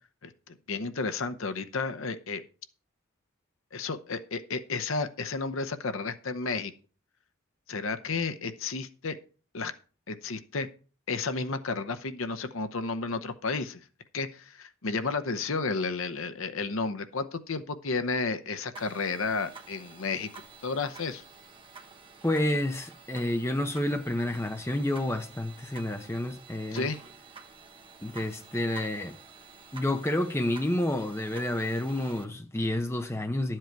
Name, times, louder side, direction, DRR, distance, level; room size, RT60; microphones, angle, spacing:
voice 1, 0.2-2.4 3.7-6.7 7.7-9.2 9.5-9.7 10.1-10.7 11.1-13.8 14.1-20.3 20.6-21.2 26.7-27.0, left 4 dB, 70° left, 0.8 m, -32 dB
sound 1, 18.7-32.2, right 4 dB, 25° right, 1.2 m, -50 dB
voice 2, 22.2-26.9 28.0-29.2 29.7-33.6, left 1 dB, 10° left, 0.8 m, -29 dB
12.0 x 7.6 x 4.6 m
head